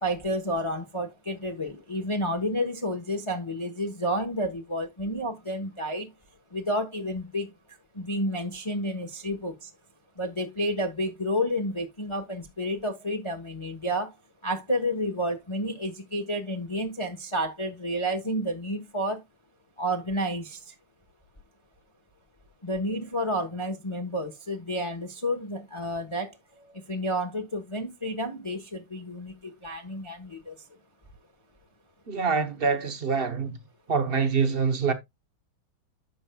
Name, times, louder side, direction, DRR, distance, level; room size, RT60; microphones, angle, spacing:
voice 1, 0.0-6.1 6.5-9.7 10.2-14.2 14.4-19.2 19.8-20.7 22.6-30.7, equal, 20° left, 0.8 m, -30 dB
voice 2, 32.1-33.6 33.9-34.9, right 5 dB, 50° right, 0.6 m, -25 dB
11.0 x 7.0 x 2.3 m
omnidirectional pair, 2.2 m